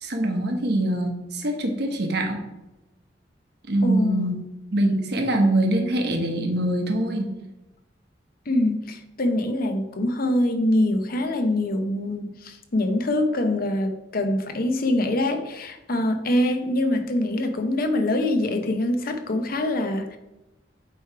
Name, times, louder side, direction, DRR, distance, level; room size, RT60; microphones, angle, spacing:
voice 1, 0.0-2.4 3.7-4.4 4.7-7.3, right 1 dB, 65° right, 3 dB, 1.2 m, -23 dB
voice 2, 3.8-4.3 8.5-20.2, left 1 dB, 55° left, 6 dB, 0.8 m, -24 dB
8.5 x 3.2 x 4.6 m, 0.99 s
head